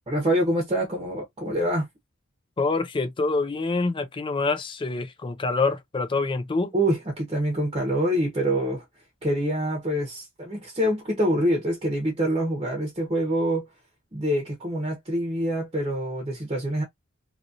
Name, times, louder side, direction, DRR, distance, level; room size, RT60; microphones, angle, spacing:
voice 1, 0.1-1.9 6.7-8.8 9.2-13.6 14.1-16.8, equal, 25° right, 0.8 m, -25 dB
voice 2, 2.6-6.7, left 3 dB, 25° left, 0.4 m, -26 dB
2.9 x 2.7 x 2.4 m
head